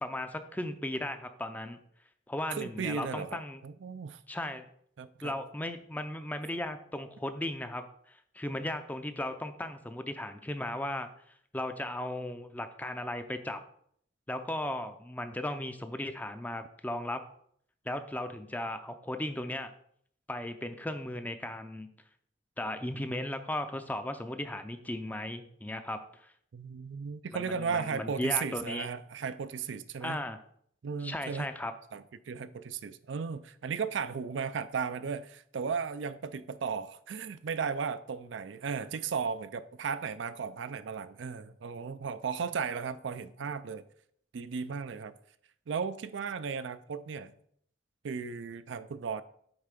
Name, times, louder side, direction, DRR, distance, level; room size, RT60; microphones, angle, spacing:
voice 1, 0.0-1.8 2.3-3.6 4.3-4.7 5.2-11.1 11.5-13.6 14.3-17.2 17.9-19.7 20.3-21.9 22.6-26.3 27.3-28.9 30.0-30.4 31.0-31.7, left 1 dB, 10° left, 0.5 m, -36 dB
voice 2, 2.5-4.2 5.0-5.3 26.5-30.2 30.8-31.5 31.9-43.8 44.3-45.1 45.7-47.3 48.0-49.2, right 6 dB, 85° right, 0.4 m, -35 dB
8.0 x 3.3 x 5.2 m
head